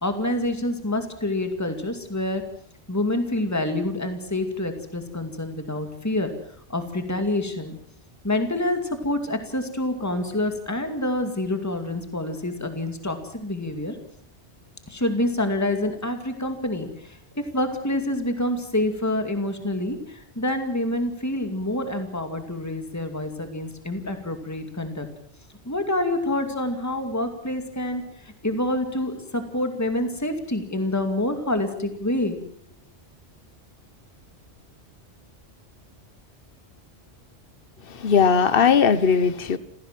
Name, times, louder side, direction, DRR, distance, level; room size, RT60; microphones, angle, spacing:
voice 1, 0.0-2.4 2.9-6.3 6.7-7.8 8.2-14.0 14.9-25.1 25.6-32.4, left 1 dB, 15° left, 2.4 m, -27 dB
voice 2, 37.8-39.6, left 6 dB, 55° left, 1.3 m, -19 dB
28.0 x 16.0 x 7.6 m
omnidirectional pair, 1.1 m